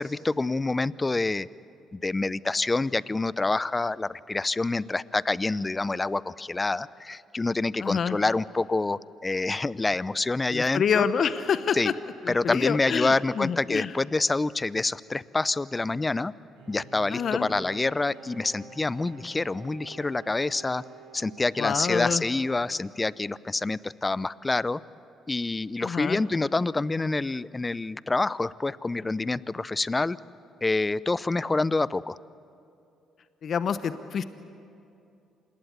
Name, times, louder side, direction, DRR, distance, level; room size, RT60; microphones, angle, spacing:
voice 1, 0.0-1.5 1.9-11.1 11.7-11.9 12.3-16.3 16.7-20.8 21.1-24.8 25.3-30.2 30.6-32.2, left 3 dB, 25° left, 19 dB, 0.7 m, -27 dB
voice 2, 7.8-8.2 10.5-11.9 12.2-13.9 17.1-17.5 21.6-22.2 25.8-26.2 33.4-34.2, left 7 dB, 55° left, 12 dB, 1.0 m, -27 dB
Bowed string instrument, 16.6-22.1, right 3 dB, 90° right, 5.7 m, -48 dB
26.5 x 20.5 x 9.4 m, 2.7 s
hypercardioid pair, 55°, 0 cm